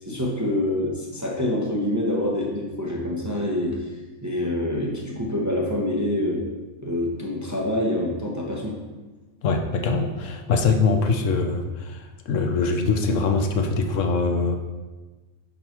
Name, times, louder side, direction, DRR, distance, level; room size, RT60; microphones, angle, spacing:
voice 1, 0.0-6.4 6.8-8.8, left 1 dB, 15° right, -2 dB, 0.7 m, -26 dB
voice 2, 9.4-12.0 12.3-14.6, left 4 dB, 70° left, 5 dB, 1.0 m, -23 dB
5.9 x 5.4 x 4.4 m, 1.2 s
omnidirectional pair, 1.4 m